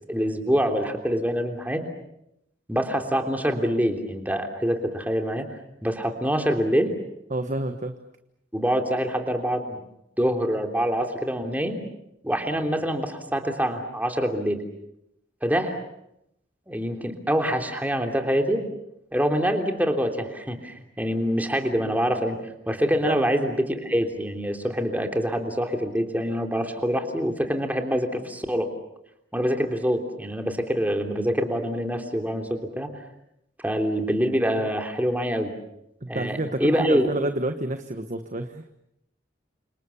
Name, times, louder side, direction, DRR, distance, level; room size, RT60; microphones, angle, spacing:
voice 1, 0.1-1.8 2.7-5.5 5.8-6.9 8.5-9.8 10.2-11.8 12.2-14.6 15.4-15.8 16.7-18.6 19.1-22.4 22.7-28.7 29.3-32.9 33.6-35.5 36.1-37.0, equal, 10° right, 4 dB, 3.3 m, -25 dB
voice 2, 7.3-7.9 23.0-23.2 36.0-38.6, right 1 dB, 40° right, 7 dB, 1.3 m, -29 dB
30.0 x 26.5 x 7.1 m, 0.81 s
head